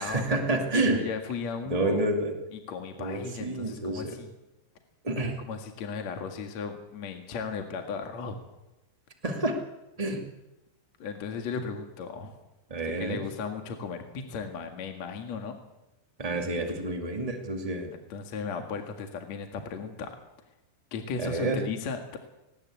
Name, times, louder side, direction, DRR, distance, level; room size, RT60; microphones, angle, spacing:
voice 1, 0.0-1.0 1.6-2.3 3.0-4.1 5.0-5.3 9.2-9.6 10.0-10.2 12.7-13.2 16.2-17.9 21.2-21.6, right 2 dB, 85° right, 3 dB, 0.3 m, -29 dB
voice 2, 0.7-2.0 2.5-4.3 5.4-8.4 11.0-12.3 13.0-15.6 17.9-20.2 20.9-22.2, left 5 dB, 50° left, 5 dB, 2.4 m, -36 dB
19.5 x 19.5 x 8.5 m, 0.97 s
omnidirectional pair, 5.2 m